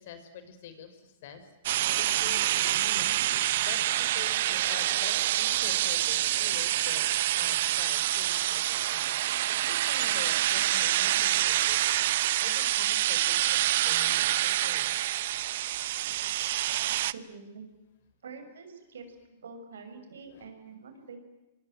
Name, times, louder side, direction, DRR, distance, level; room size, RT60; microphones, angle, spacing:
voice 1, 0.0-3.2 3.6-7.1 7.3-9.4 9.7-11.8 12.4-14.9 20.3-20.5, left 7 dB, 60° left, 9 dB, 5.9 m, -46 dB
sound 1, 1.6-17.1, right 14 dB, 60° right, 0.9 m, -27 dB
voice 2, 17.0-17.7 18.2-19.2 19.4-21.2, right 4 dB, 85° right, 7 dB, 6.5 m, -46 dB
25.5 x 23.0 x 9.3 m, 1.0 s
hypercardioid pair, 135°, 0 cm